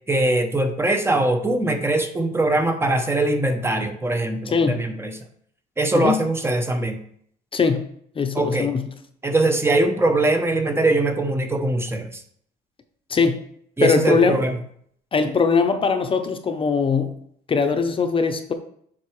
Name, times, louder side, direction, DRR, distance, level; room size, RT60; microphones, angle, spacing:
voice 1, 0.1-5.2 5.8-7.0 8.3-8.7 9.2-12.2 13.8-14.6, right 2 dB, 15° right, 6 dB, 0.7 m, -21 dB
voice 2, 4.5-4.8 5.9-6.2 7.5-7.9 8.2-8.9 13.1-13.4 13.8-14.4 15.1-17.1 17.5-18.5, left 5 dB, 30° left, 7 dB, 0.7 m, -21 dB
7.4 x 4.6 x 3.2 m, 0.64 s
cardioid pair, 110°, 17 cm